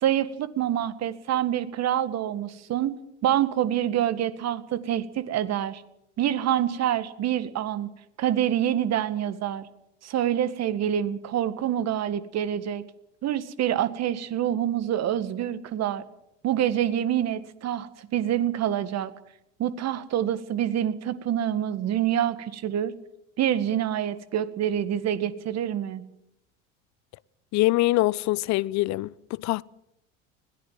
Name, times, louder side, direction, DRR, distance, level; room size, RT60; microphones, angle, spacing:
voice 1, 0.0-5.8 6.2-7.9 8.2-9.7 10.0-12.8 13.2-16.0 16.4-19.1 19.6-22.9 23.4-26.0, right 10 dB, 40° right, 2.0 m, -26 dB
voice 2, 27.5-29.6, left 19 dB, 45° left, 0.7 m, -24 dB
21.0 x 17.5 x 7.7 m
hypercardioid pair, 75°, 39 cm